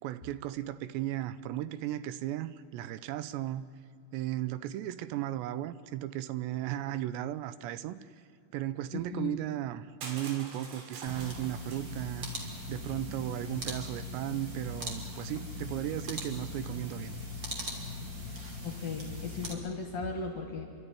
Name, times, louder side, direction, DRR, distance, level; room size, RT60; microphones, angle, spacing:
voice 1, 0.0-3.7 4.1-8.0 8.5-12.3 12.7-17.2, right 13 dB, 80° right, 15 dB, 2.8 m, -35 dB
voice 2, 8.9-9.4 18.6-20.7, left 4 dB, 55° left, 4 dB, 2.0 m, -37 dB
Crushing, 10.0-12.9, right 4 dB, 65° right, 4.5 m, -47 dB
sound 1, 11.1-19.5, left 1 dB, 30° right, 2.6 m, -40 dB
29.0 x 12.5 x 10.0 m, 2.4 s
omnidirectional pair, 5.1 m